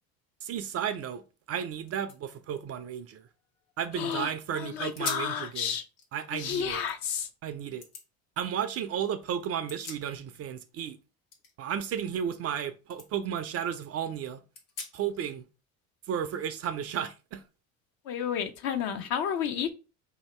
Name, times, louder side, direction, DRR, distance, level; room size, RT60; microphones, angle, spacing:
voice 1, 0.4-1.2 1.5-3.3 3.8-5.7 6.1-6.8 7.4-7.8 8.4-11.0 11.6-14.4 14.9-15.5 16.1-17.4, right 8 dB, 35° right, 0.4 m, -33 dB
sound 1, 1.5-1.6 1.8-4.0 4.4-4.5 4.9-5.4 5.8-7.2 7.8-8.1 9.4-10.5 10.8-12.6 12.9-13.1 13.6-13.7 14.5-15.2, left 5 dB, 85° left, 1.2 m, -44 dB
voice 2, 3.9-5.8 6.3-7.3 18.0-19.7, left 8 dB, 55° left, 0.8 m, -31 dB
2.9 x 2.8 x 4.3 m
hypercardioid pair, 80°, 42 cm